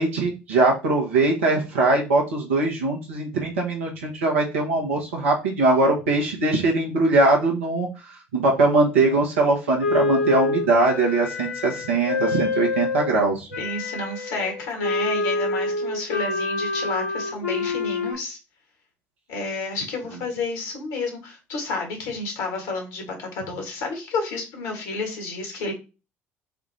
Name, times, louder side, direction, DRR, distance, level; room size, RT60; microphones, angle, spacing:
voice 1, 0.0-7.9 8.3-13.5, right 2 dB, 80° right, 0 dB, 1.3 m, -21 dB
Wind instrument woodwind instrument, 9.8-13.1 13.5-18.1, left 3 dB, 85° left, 0.9 m, -27 dB
voice 2, 13.6-18.4 19.3-25.7, left 3 dB, 70° left, 3 dB, 1.7 m, -30 dB
4.8 x 2.5 x 3.3 m, 0.29 s
figure-of-eight pair, 55°, 7 cm